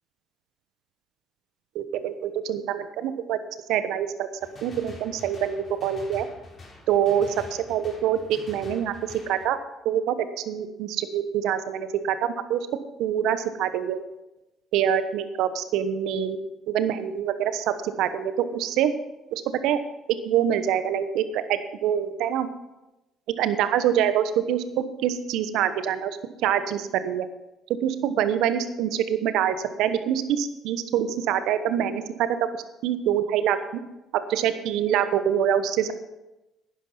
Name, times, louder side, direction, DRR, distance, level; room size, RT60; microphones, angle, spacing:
voice 1, 1.7-3.4 3.7-4.3 4.6-6.3 6.9-9.6 9.8-10.1 10.5-12.7 13.0-14.0 14.7-16.4 16.7-18.9 19.3-19.8 20.2-22.5 23.4-27.3 27.8-32.3 32.8-33.6 34.3-35.9, right 9 dB, 75° right, 11 dB, 1.0 m, -25 dB
sound 1, 4.4-9.4, left 3 dB, 45° left, 4.2 m, -46 dB
11.0 x 10.0 x 5.8 m, 0.98 s
hypercardioid pair, 60°, 0 cm